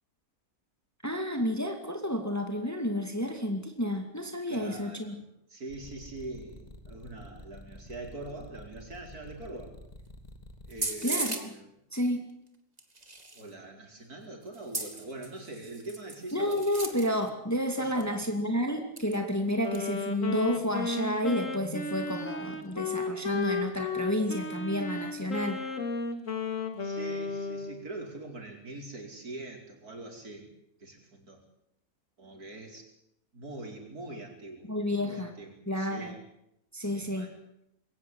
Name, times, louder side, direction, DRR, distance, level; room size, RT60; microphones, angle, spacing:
voice 1, 1.0-5.1 11.0-11.5 11.9-12.3 16.3-25.6 34.7-35.3 35.7-36.1 36.7-37.3, equal, 10° left, 5 dB, 2.4 m, -30 dB
voice 2, 4.5-9.8 10.7-11.7 13.3-17.0 17.8-18.2 26.8-30.5 30.8-31.4 32.2-32.9 33.3-34.7 35.0-36.2 36.8-37.4, right 2 dB, 85° right, 2 dB, 5.3 m, -43 dB
sound 1, 5.7-10.8, left 2 dB, 25° left, 2.5 m, -48 dB
sound 2, 10.7-11.5 12.8-13.5 14.5-17.3 17.7-17.8 18.0-18.1 19.0-19.2 19.5-19.8, right 2 dB, 25° right, 2.4 m, -37 dB
Wind instrument woodwind instrument, 19.6-27.8, left 3 dB, 60° left, 2.6 m, -34 dB
22.0 x 17.5 x 9.6 m, 0.79 s
omnidirectional pair, 1.6 m